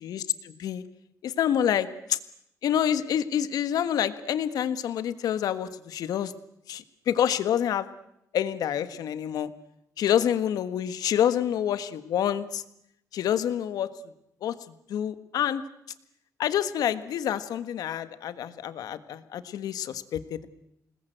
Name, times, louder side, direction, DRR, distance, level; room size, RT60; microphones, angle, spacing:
voice 1, 0.0-0.8 1.2-2.2 2.6-6.3 6.7-7.9 8.3-9.5 10.0-12.6 13.1-13.9 14.4-14.5 14.9-15.6 16.4-20.5, left 10 dB, 80° left, 12 dB, 1.5 m, -27 dB
27.5 x 20.0 x 8.0 m, 0.78 s
cardioid pair, 150°, 6 cm